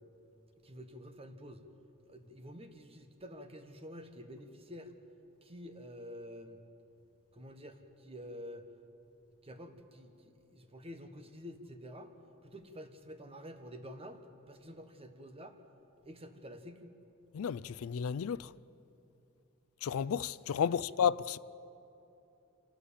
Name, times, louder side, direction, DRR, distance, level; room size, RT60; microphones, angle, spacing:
voice 1, 0.6-1.6 2.1-4.9 5.4-6.6 7.3-8.6 9.4-12.1 12.4-15.6 16.0-17.0 20.6-20.8, equal, 25° right, 1.4 m, -49 dB
voice 2, 17.3-18.5 19.8-21.4, left 7 dB, 70° left, 0.4 m, -32 dB
26.5 x 12.5 x 8.6 m
head